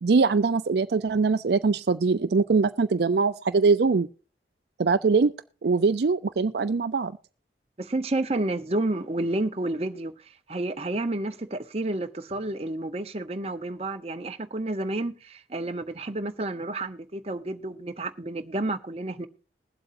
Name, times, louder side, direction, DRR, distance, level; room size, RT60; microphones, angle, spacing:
voice 1, 0.0-4.1 4.8-5.3 5.6-7.1, right 4 dB, 65° right, 0.4 m, -22 dB
voice 2, 7.8-10.1 10.5-19.3, right 2 dB, 35° right, 0.8 m, -30 dB
21.0 x 7.9 x 2.6 m
head